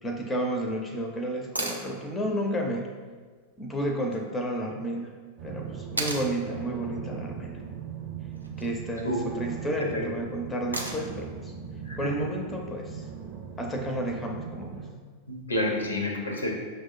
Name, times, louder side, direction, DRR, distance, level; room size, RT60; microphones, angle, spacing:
voice 1, 0.0-2.9 3.6-5.1 5.4-7.6 8.6-11.5 12.0-13.0 13.6-14.8, right 1 dB, 15° left, 2 dB, 0.5 m, -31 dB
sound 1, 1.5-1.8 4.1-4.2 6.0-6.3 8.3-8.7 10.7-11.2 13.3-13.4, right 1 dB, 85° right, 0.4 m, -33 dB
sound 2, 5.4-14.9, right 7 dB, 35° right, 0.6 m, -39 dB
voice 2, 11.9-12.2 15.3-16.5, left 1 dB, 80° left, 2 dB, 0.5 m, -29 dB
5.9 x 2.0 x 2.4 m, 1.5 s
figure-of-eight pair, 90°, 0 cm